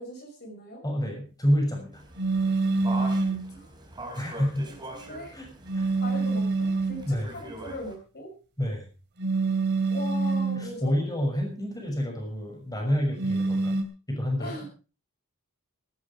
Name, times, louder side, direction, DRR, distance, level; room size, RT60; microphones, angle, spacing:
voice 1, 0.0-0.8 3.2-3.7 4.7-5.4 5.9-8.3 9.9-11.0 14.4-14.7, left 1 dB, 50° left, 1 dB, 5.7 m, -40 dB
voice 2, 0.8-2.0 4.1-4.7 5.3-5.5 5.7-5.9 6.2-6.3 7.0-7.3 8.6-8.9 10.6-13.8 14.1-14.7, equal, 15° left, 2 dB, 6.2 m, -28 dB
sound 1, 1.9-7.9, right 1 dB, 20° right, 3.8 m, -42 dB
sound 2, 2.2-3.5 5.7-7.1 9.2-10.7 13.2-13.8, right 3 dB, 50° right, 2.6 m, -26 dB
15.0 x 12.5 x 5.0 m, 0.36 s
head